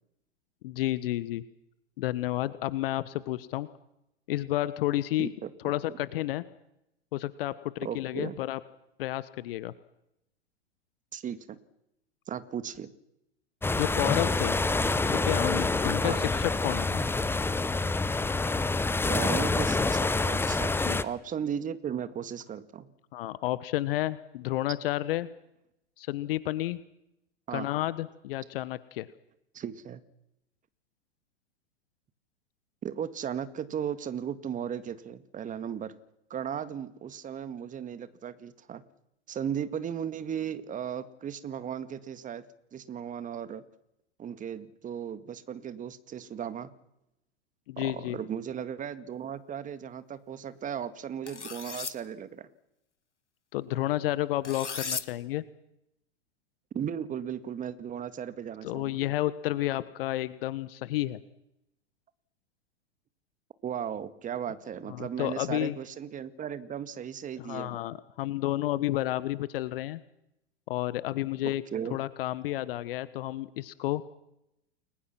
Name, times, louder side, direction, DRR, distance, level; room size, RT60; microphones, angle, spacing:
voice 1, 0.6-1.4 2.0-3.7 4.3-5.3 5.6-6.4 7.1-8.6 9.0-9.7 13.7-14.6 15.1-17.0 20.8-21.0 23.1-25.3 26.0-26.8 27.5-29.1 47.7-48.2 53.5-55.4 58.6-61.2 64.9-65.8 67.4-70.0 70.7-71.6 71.9-74.0, left 15 dB, 55° left, 16 dB, 1.3 m, -31 dB
voice 2, 5.2-5.5 5.9-6.0 7.8-8.4 11.1-11.6 12.3-12.9 16.0-16.3 19.1-22.9 27.5-27.7 29.5-30.0 32.8-35.9 36.3-38.8 39.3-42.4 42.7-43.6 44.2-46.7 47.8-52.5 56.7-59.0 63.6-67.8 71.4-72.0, right 8 dB, 20° right, 12 dB, 1.9 m, -36 dB
sound 1, 13.6-21.0, left 3 dB, 5° left, 1.0 m, -27 dB
sound 2, 51.3-51.9 54.4-55.0, left 5 dB, 90° left, 1.6 m, -35 dB
29.5 x 21.5 x 6.1 m, 0.83 s
figure-of-eight pair, 100°, 34 cm